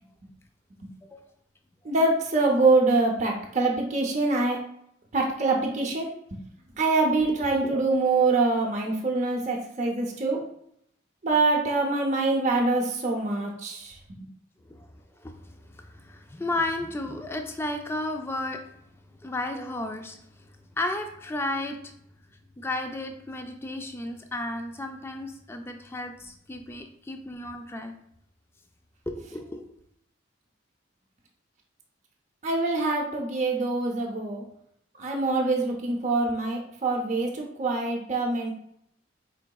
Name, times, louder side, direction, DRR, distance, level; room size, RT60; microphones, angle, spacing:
voice 1, 1.8-4.6 5.1-6.1 6.8-10.4 11.2-14.0 32.4-34.4 35.0-38.5, right 3 dB, 35° right, -1 dB, 0.6 m, -24 dB
voice 2, 15.7-18.6 19.2-20.2 20.8-21.8 22.6-27.9 29.1-29.7, left 2 dB, 10° left, 5 dB, 0.3 m, -33 dB
4.5 x 3.8 x 2.3 m, 0.72 s
head